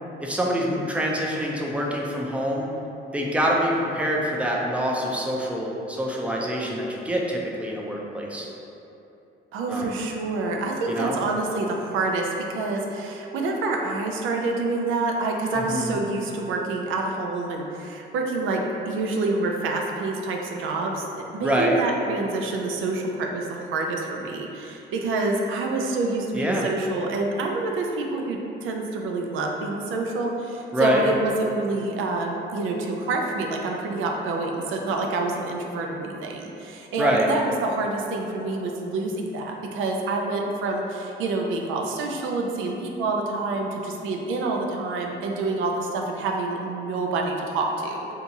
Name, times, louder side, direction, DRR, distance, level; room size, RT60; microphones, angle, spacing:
voice 1, 0.2-2.7 3.1-8.5 9.7-9.9 10.9-11.2 15.5-15.9 21.4-21.8 26.3-26.7 30.7-31.1 37.0-37.3, equal, 5° right, -2 dB, 0.5 m, -25 dB
voice 2, 9.5-21.0 21.3-48.1, right 3 dB, 85° right, 1 dB, 0.4 m, -27 dB
2.7 x 2.3 x 4.0 m, 2.8 s
cardioid pair, 90°, 20 cm